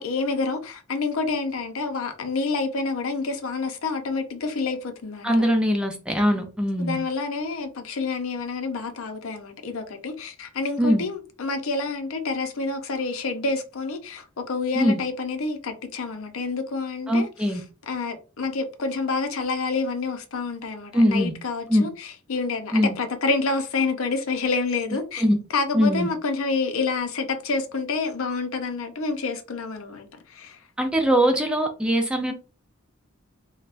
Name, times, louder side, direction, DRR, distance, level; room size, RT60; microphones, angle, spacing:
voice 1, 0.0-5.3 6.8-17.3 17.9-25.2 25.5-30.6, left 4 dB, 80° left, 0.6 m, -28 dB
voice 2, 5.2-7.0 10.8-11.0 14.8-15.0 17.1-17.6 20.9-21.3 21.7-21.9 22.7-23.0 25.2-25.4 25.7-26.1 30.8-32.3, equal, 5° right, 0.4 m, -21 dB
3.3 x 2.2 x 2.4 m
head